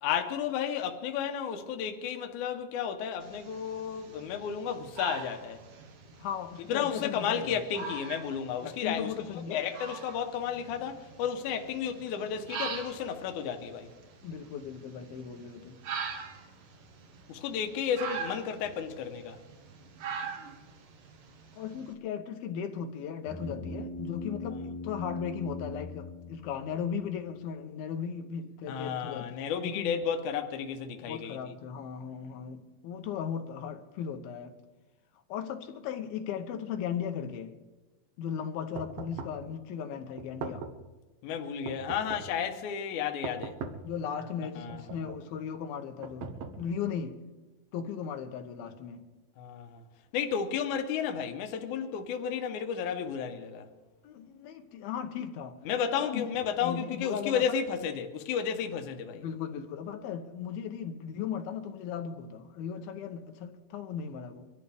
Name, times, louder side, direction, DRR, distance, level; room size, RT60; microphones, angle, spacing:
voice 1, 0.0-5.6 6.7-9.1 9.5-13.9 17.3-19.4 28.7-31.5 41.2-43.6 44.6-45.0 49.4-49.8 50.1-53.7 55.7-59.2, left 8 dB, 70° left, 2.2 m, -32 dB
sound 1, 3.2-21.9, right 5 dB, 70° right, 3.0 m, -43 dB
voice 2, 6.2-7.8 8.6-9.7 14.2-15.8 21.6-30.0 31.1-34.6 35.3-37.6 38.2-40.7 43.8-47.2 47.7-49.1 54.0-55.6 56.0-56.3 56.6-57.6 59.1-64.5, left 7 dB, 85° left, 2.8 m, -37 dB
sound 2, 23.3-27.0, left 2 dB, 5° left, 1.2 m, -40 dB
sound 3, 38.7-39.5 40.2-40.9 41.6-42.4 43.2-44.0 44.7-45.3 46.0-46.9, right 4 dB, 85° right, 1.3 m, -41 dB
24.0 x 13.0 x 3.5 m
omnidirectional pair, 4.2 m